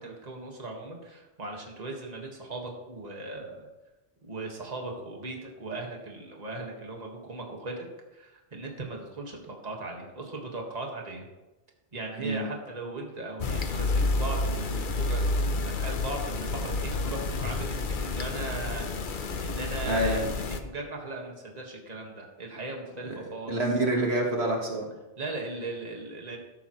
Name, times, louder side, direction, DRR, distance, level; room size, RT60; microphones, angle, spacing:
voice 1, 0.0-3.7 4.2-7.9 8.1-11.3 11.9-23.6 25.2-26.4, right 2 dB, 35° right, 0 dB, 1.8 m, -38 dB
sound 1, 13.4-20.6, left 3 dB, 50° left, 0.9 m, -29 dB
voice 2, 19.8-20.3 23.0-23.2 23.5-24.9, right 1 dB, 65° right, 0 dB, 1.9 m, -27 dB
13.5 x 12.0 x 3.2 m, 1.1 s
omnidirectional pair, 1.2 m